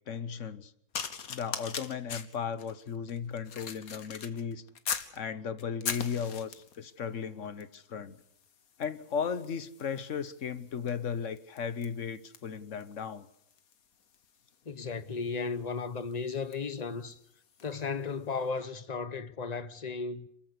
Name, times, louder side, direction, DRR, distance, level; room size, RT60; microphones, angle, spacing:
voice 1, 0.1-0.7 1.3-4.6 5.1-8.2 8.8-13.3, left 7 dB, 60° left, 1.3 m, -36 dB
sound 1, 0.9-5.2 5.6-6.8 7.6-7.8 8.1-17.8 18.5-18.7, left 7 dB, 90° left, 1.8 m, -42 dB
voice 2, 14.7-17.2 17.6-20.3, left 4 dB, 35° left, 1.0 m, -35 dB
27.5 x 14.5 x 8.4 m
omnidirectional pair, 1.5 m